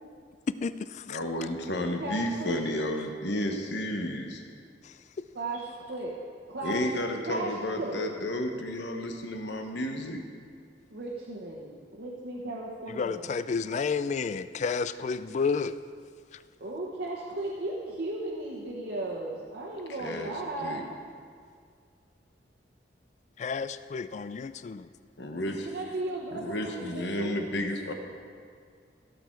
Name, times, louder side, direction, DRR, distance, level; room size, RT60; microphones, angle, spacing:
voice 1, 1.1-4.4 6.6-10.2 20.0-20.3 20.6-20.8 25.2-25.7 26.3-27.9, left 1 dB, 75° left, 4 dB, 1.2 m, -32 dB
voice 2, 2.0-2.6 5.3-6.2 6.5-6.9 7.2-8.1 10.9-13.3 16.6-20.9 25.6-27.4, right 2 dB, 70° right, -5 dB, 1.2 m, -35 dB
voice 3, 12.9-15.8 23.4-24.9, left 5 dB, 40° left, 14 dB, 0.3 m, -30 dB
16.0 x 6.8 x 4.6 m, 2.1 s
head